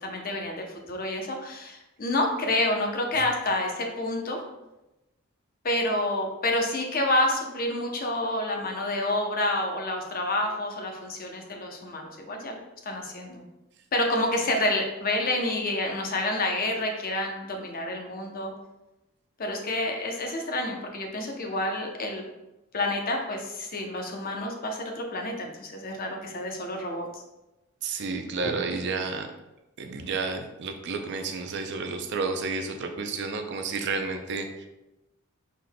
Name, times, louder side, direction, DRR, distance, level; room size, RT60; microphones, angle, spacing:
voice 1, 0.0-4.4 5.6-12.6 12.8-13.4 13.9-18.5 19.4-22.2 22.7-27.2 28.4-28.5, left 1 dB, 45° left, 2 dB, 0.7 m, -28 dB
voice 2, 27.8-29.3 29.8-34.7, right 4 dB, 55° right, 6 dB, 0.5 m, -31 dB
6.2 x 3.7 x 2.2 m, 0.97 s
head